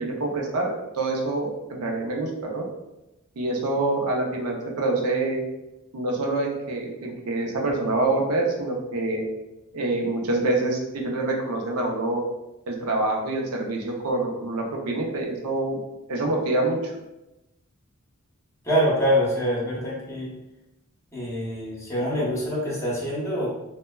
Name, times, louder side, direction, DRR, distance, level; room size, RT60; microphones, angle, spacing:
voice 1, 0.0-2.7 3.4-5.4 5.9-9.2 9.7-12.2 12.7-15.8 16.1-16.9, right 2 dB, 80° right, 0 dB, 0.5 m, -26 dB
voice 2, 18.6-20.3 21.1-23.5, equal, 15° left, -5 dB, 0.8 m, -25 dB
3.1 x 2.1 x 2.2 m, 0.95 s
head